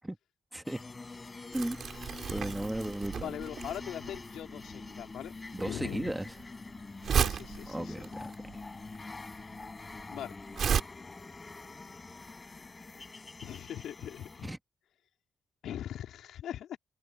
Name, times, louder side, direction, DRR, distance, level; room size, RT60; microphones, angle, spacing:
sound 1, 0.6-14.5, left 3 dB, 30° left, 5.6 m, -45 dB
Crumpling crinkling, 1.5-10.8, right 7 dB, 60° right, 4.6 m, -34 dB
voice 1, 2.3-3.4 5.5-6.3 7.7-8.6 14.4-14.6, right 1 dB, 10° right, 1.9 m, -35 dB
voice 2, 3.2-5.3 5.6-6.1 7.1-8.1 10.1-10.4 13.4-14.5 15.6-16.8, left 11 dB, 75° left, 4.6 m, -41 dB
supercardioid pair, 65°, 0 cm